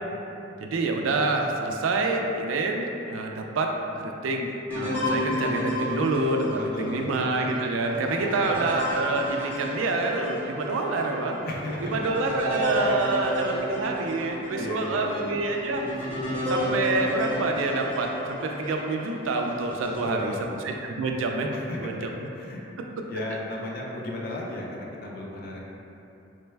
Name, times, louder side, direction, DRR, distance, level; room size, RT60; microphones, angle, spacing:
voice 1, 0.6-3.7 4.0-11.4 11.8-15.8 16.5-20.3 20.6-21.5 21.8-22.1 23.0-23.1, right 3 dB, 85° right, 2 dB, 0.3 m, -27 dB
sound 1, 4.7-10.5 11.0-11.1 11.7-18.9 19.5-20.1, equal, 10° left, 0.6 m, -31 dB
voice 2, 6.5-7.1 8.2-8.6 11.5-12.0 13.0-13.2 14.6-15.1 20.0-20.5 21.5-22.6 23.1-25.6, left 1 dB, 50° left, -2 dB, 0.4 m, -35 dB
sound 2, 7.3-19.5, equal, 30° right, 0.6 m, -43 dB
3.2 x 2.1 x 3.2 m, 2.9 s
head